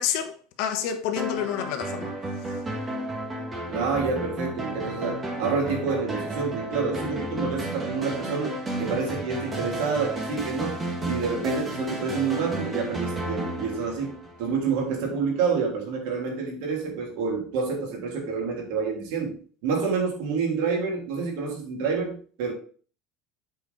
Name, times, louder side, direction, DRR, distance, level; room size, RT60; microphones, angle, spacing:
voice 1, 0.0-2.1, left 9 dB, 65° left, 1.2 m, -29 dB
sound 1, 1.2-14.7, right 1 dB, 15° right, 1.6 m, -33 dB
voice 2, 3.7-19.3 19.6-22.5, right 5 dB, 75° right, 3.1 m, -28 dB
7.9 x 4.8 x 4.2 m
cardioid pair, 150°, 0 cm